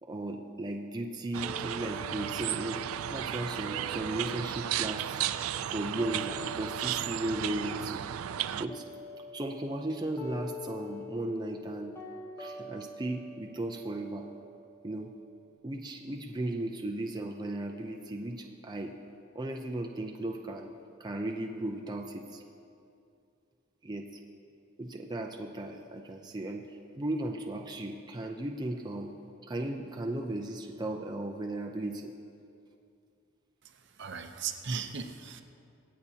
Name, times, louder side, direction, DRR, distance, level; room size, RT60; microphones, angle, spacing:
voice 1, 0.0-2.8 3.1-5.2 5.7-8.0 8.5-8.9 9.3-12.0 12.4-14.3 14.8-15.1 15.6-19.0 19.3-20.7 21.0-22.4 23.8-24.2 24.8-29.1 29.4-32.1, right 1 dB, 20° right, 2 dB, 0.5 m, -36 dB
sound 1, 1.3-8.7, right 11 dB, 85° right, 0.3 m, -34 dB
sound 2, 1.4-7.4 7.7-15.4, left 2 dB, 15° left, 1.1 m, -47 dB
voice 2, 34.0-35.4, right 5 dB, 55° right, 6 dB, 0.7 m, -36 dB
24.5 x 8.2 x 2.8 m, 2.5 s
head